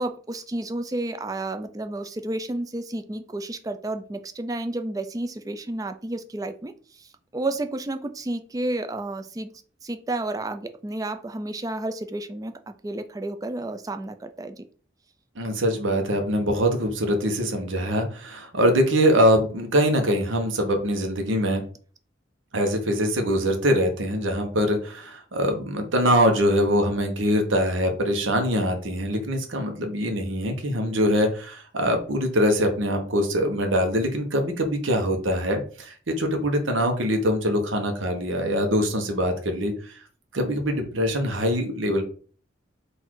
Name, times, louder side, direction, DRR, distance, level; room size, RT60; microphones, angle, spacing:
voice 1, 0.0-9.5 9.8-14.6, right 2 dB, 20° right, 8 dB, 0.3 m, -31 dB
voice 2, 15.4-21.6 22.5-39.9 40.3-42.0, equal, 90° right, 4 dB, 0.9 m, -23 dB
4.0 x 2.6 x 4.6 m, 0.42 s
head